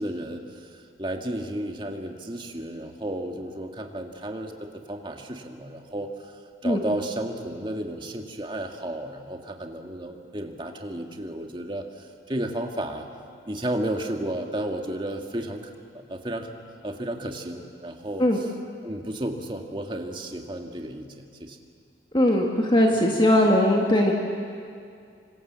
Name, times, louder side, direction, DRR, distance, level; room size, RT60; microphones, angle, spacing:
voice 1, 0.0-13.1 13.5-15.7 15.9-16.5 16.8-18.5 18.8-21.6, right 1 dB, 25° right, 3 dB, 1.8 m, -33 dB
voice 2, 22.1-24.1, left 1 dB, 25° left, 0 dB, 1.7 m, -20 dB
26.5 x 25.5 x 7.5 m, 2.3 s
head